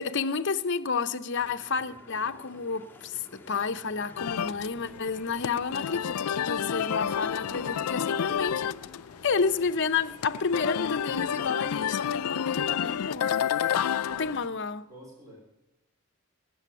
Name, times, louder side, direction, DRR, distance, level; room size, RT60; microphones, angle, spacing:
voice 1, 0.0-8.7 9.2-13.5 14.1-14.9, left 5 dB, 55° left, 0.7 m, -30 dB
sound 1, 1.3-13.2, left 2 dB, 10° left, 1.7 m, -52 dB
sound 2, 4.2-14.5, left 9 dB, 85° left, 0.4 m, -30 dB
voice 2, 13.6-14.5 14.9-15.4, equal, 15° right, 3.1 m, -51 dB
18.5 x 7.8 x 6.9 m
head